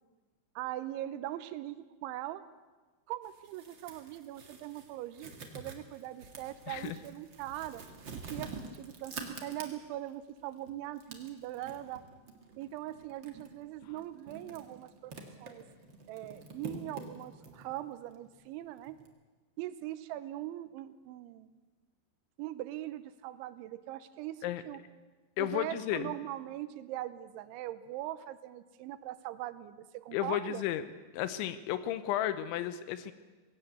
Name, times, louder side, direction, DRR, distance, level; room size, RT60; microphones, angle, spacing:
voice 1, 0.6-2.4 3.1-7.8 8.2-12.0 12.6-15.1 15.4-15.6 16.1-19.0 19.6-21.6 22.4-24.8 25.4-30.6, right 14 dB, 85° right, 13 dB, 3.2 m, -41 dB
sound 1, 3.2-10.1 10.5-19.1, right 4 dB, 55° right, 1.2 m, -48 dB
voice 2, 25.4-26.1 30.1-30.8 31.1-33.1, left 12 dB, 85° left, 12 dB, 3.3 m, -33 dB
19.0 x 17.0 x 8.1 m, 1.3 s
omnidirectional pair, 5.3 m